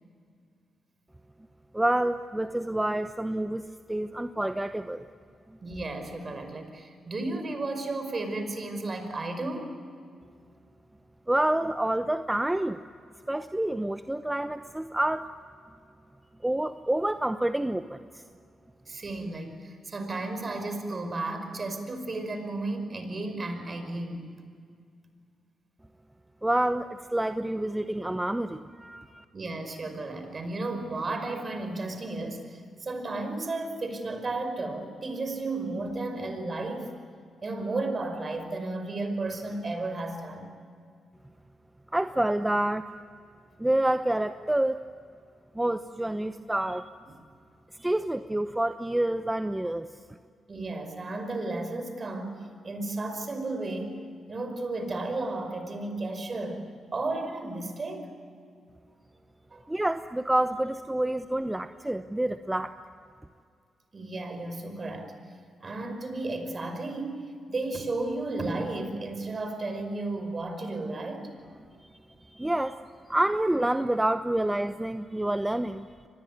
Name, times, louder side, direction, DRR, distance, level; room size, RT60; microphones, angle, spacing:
voice 1, 1.7-3.6 3.9-5.1 11.3-12.8 13.3-15.3 16.4-18.2 26.4-29.2 41.9-42.9 43.6-44.8 45.5-46.9 47.8-49.9 59.7-62.8 72.3-72.8 73.1-75.9, right 1 dB, 15° right, 10 dB, 0.9 m, -28 dB
voice 2, 5.6-9.8 18.9-24.3 29.3-36.9 37.4-40.5 50.5-54.0 54.3-56.7 56.9-58.1 59.5-59.6 63.9-65.1 65.6-71.3, right 2 dB, 45° right, 7 dB, 5.4 m, -33 dB
25.0 x 20.5 x 9.5 m, 2.3 s
supercardioid pair, 50°, 0 cm